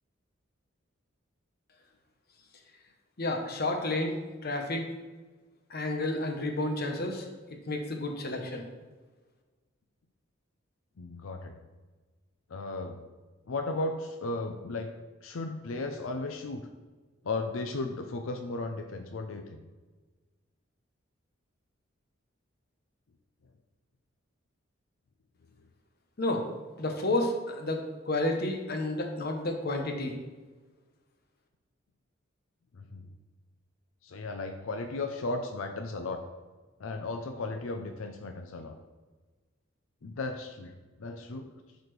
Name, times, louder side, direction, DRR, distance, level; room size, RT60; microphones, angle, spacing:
voice 1, 3.2-4.2 4.4-4.9 5.7-7.3 7.7-8.6 26.2-26.4 26.8-30.2, left 2 dB, 50° left, 3 dB, 1.0 m, -30 dB
voice 2, 11.0-11.5 12.5-13.0 13.5-14.9 15.2-16.7 17.2-19.6 32.7-33.1 34.0-36.2 36.8-38.8 40.0-41.5, left 2 dB, 85° left, 5 dB, 0.5 m, -35 dB
11.5 x 4.1 x 3.3 m, 1.3 s
head